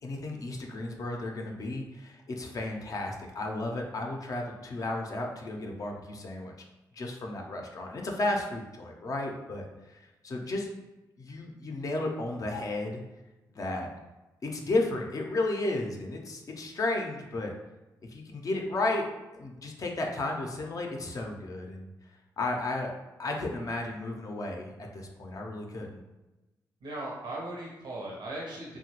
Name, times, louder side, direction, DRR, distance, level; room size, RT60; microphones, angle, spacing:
voice 1, 0.0-6.5 6.9-10.7 11.2-13.0 13.5-13.9 14.4-17.5 18.1-19.1 19.3-21.9 22.4-22.9 23.2-26.0, left 2 dB, 50° left, 1 dB, 0.5 m, -33 dB
voice 2, 26.8-28.8, right 1 dB, 80° right, -3 dB, 0.7 m, -38 dB
2.8 x 2.2 x 2.9 m, 1.1 s
cardioid pair, 75°, 8 cm